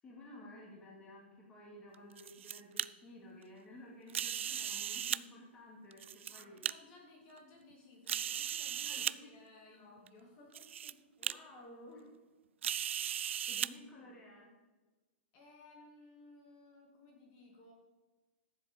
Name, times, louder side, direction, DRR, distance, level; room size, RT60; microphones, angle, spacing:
voice 1, 0.0-6.7 8.8-9.3 9.7-10.0 11.2-12.1 13.0-14.5, left 1 dB, 15° left, -2 dB, 2.3 m, -54 dB
sound 1, 1.9-2.9 4.1-5.2 5.9-6.7 7.4-7.5 8.1-9.1 10.1-10.2 10.5-10.9 11.2-11.3 12.6-13.7, right 9 dB, 85° right, 0.4 m, -37 dB
voice 2, 6.3-11.4 12.8-13.0 13.5-13.7 15.3-17.7, left 2 dB, 35° left, 1 dB, 2.3 m, -59 dB
14.0 x 7.5 x 5.1 m, 1.2 s
hypercardioid pair, 165°, 6 cm